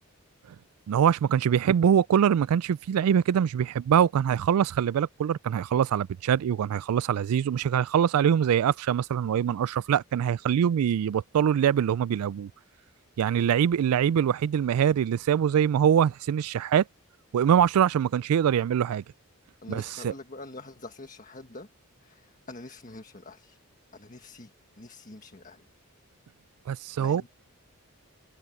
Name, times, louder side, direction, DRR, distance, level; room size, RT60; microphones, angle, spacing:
voice 1, 0.9-12.5 13.2-16.8 17.3-19.0 19.7-20.1 26.7-27.3, right 8 dB, 80° right, 0.3 m, -23 dB
voice 2, 19.6-21.7 22.0-23.6 23.9-25.6 27.0-27.3, left 2 dB, 35° left, 1.6 m, -45 dB
head